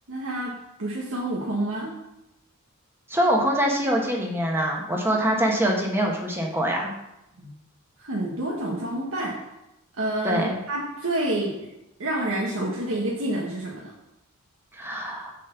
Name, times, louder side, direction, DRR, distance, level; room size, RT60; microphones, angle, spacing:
voice 1, 0.1-0.5 0.8-1.9 7.4-7.5 8.0-9.3 10.0-11.7 12.0-13.9, right 1 dB, 65° right, -3 dB, 1.3 m, -28 dB
voice 2, 3.1-6.9 10.2-10.5 14.8-15.3, equal, 10° right, -1 dB, 1.3 m, -24 dB
7.3 x 4.2 x 6.8 m, 0.89 s
head